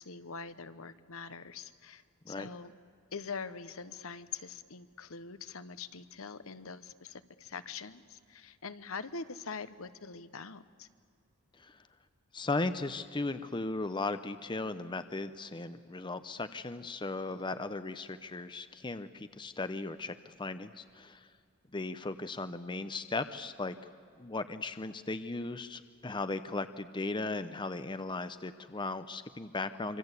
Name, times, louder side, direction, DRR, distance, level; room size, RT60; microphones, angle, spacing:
voice 1, 0.0-2.7 3.1-10.9 17.3-17.4, left 5 dB, 65° left, 12 dB, 1.0 m, -44 dB
voice 2, 12.3-21.3 21.7-23.7 24.2-30.0, left 3 dB, 20° left, 11 dB, 0.6 m, -37 dB
26.0 x 25.5 x 8.2 m, 2.3 s
head